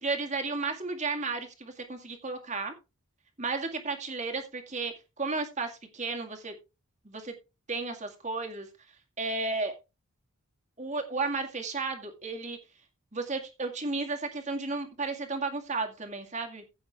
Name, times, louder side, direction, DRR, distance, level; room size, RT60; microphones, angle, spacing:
voice 1, 0.0-2.7 3.4-6.5 7.0-7.3 7.7-8.7 9.2-9.7 10.8-12.6 13.1-16.6, right 3 dB, 30° right, 4 dB, 2.1 m, -33 dB
15.5 x 6.4 x 3.5 m, 0.27 s
head